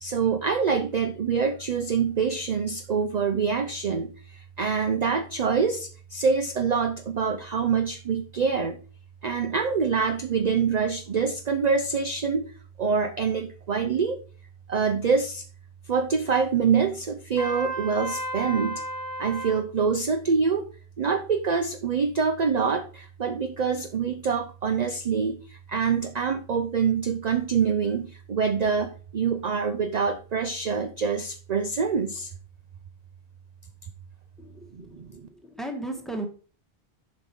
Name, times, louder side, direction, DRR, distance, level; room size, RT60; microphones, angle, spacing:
voice 1, 0.0-8.8 9.2-12.5 12.8-14.2 14.7-15.4 15.9-18.8 19.2-20.7 21.0-32.3 34.7-35.1, right 5 dB, 45° right, 8 dB, 0.7 m, -25 dB
Trumpet, 17.4-19.6, right 1 dB, 20° left, 1.3 m, -33 dB
voice 2, 34.4-36.3, right 2 dB, ahead, 4 dB, 1.3 m, -36 dB
7.7 x 5.3 x 4.4 m, 0.38 s
omnidirectional pair, 1.1 m